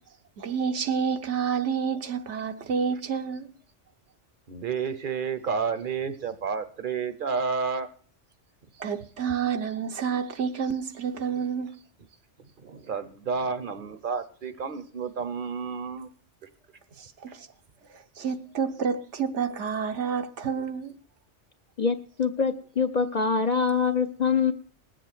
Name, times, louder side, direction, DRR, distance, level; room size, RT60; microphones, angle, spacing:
voice 1, 0.4-3.5 8.8-11.7 17.0-17.5 17.9-21.0, right 6 dB, 75° right, 1.2 m, -29 dB
voice 2, 4.5-7.9 12.6-16.1, right 5 dB, 50° right, 0.9 m, -30 dB
voice 3, 21.8-24.5, left 5 dB, 45° left, 0.7 m, -24 dB
19.5 x 7.6 x 4.4 m
omnidirectional pair, 1.2 m